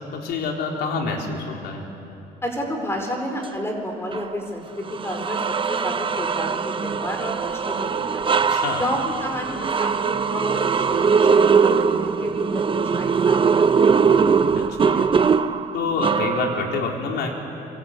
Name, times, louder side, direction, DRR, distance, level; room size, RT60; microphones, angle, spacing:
voice 1, 0.1-1.8 8.5-8.8 14.5-15.0 15.7-17.4, left 4 dB, 75° left, 1 dB, 4.4 m, -27 dB
voice 2, 2.4-8.3 8.7-12.6 12.9-14.1, equal, 15° left, 3 dB, 4.5 m, -31 dB
sound 1, 4.1-4.3 4.9-16.8, right 5 dB, 30° right, 0.9 m, -21 dB
26.0 x 23.5 x 8.3 m, 2.9 s
cardioid pair, 110°, 17 cm